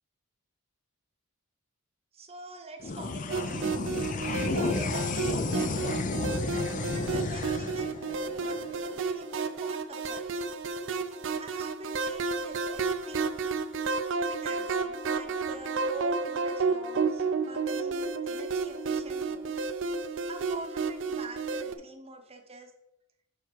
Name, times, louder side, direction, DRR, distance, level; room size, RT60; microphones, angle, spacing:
voice 1, 2.1-3.9 4.3-6.0 6.8-8.0 8.4-8.6 8.9-10.5 11.3-13.5 14.2-19.7 20.3-22.7, right 2 dB, 30° right, 6 dB, 0.8 m, -45 dB
sound 1, 2.8-9.5, left 3 dB, 35° left, 0.5 m, -32 dB
sound 2, 3.3-21.8, right 4 dB, 60° right, 0.5 m, -31 dB
6.7 x 4.7 x 4.5 m, 0.87 s
head